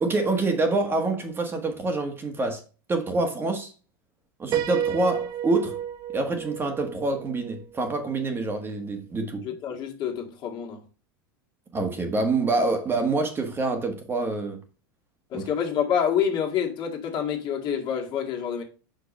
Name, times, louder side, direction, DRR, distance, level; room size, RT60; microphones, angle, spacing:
voice 1, 0.0-2.6 2.9-3.7 4.4-5.8 6.1-9.4 11.7-14.6 15.3-15.5, right 3 dB, 20° right, 1.3 m, -26 dB
Piano, 4.5-8.3, right 10 dB, 35° right, 0.7 m, -31 dB
voice 2, 9.4-10.8 15.3-18.6, left 8 dB, 40° left, 1.9 m, -27 dB
5.7 x 5.2 x 5.2 m
supercardioid pair, 120°, 11 cm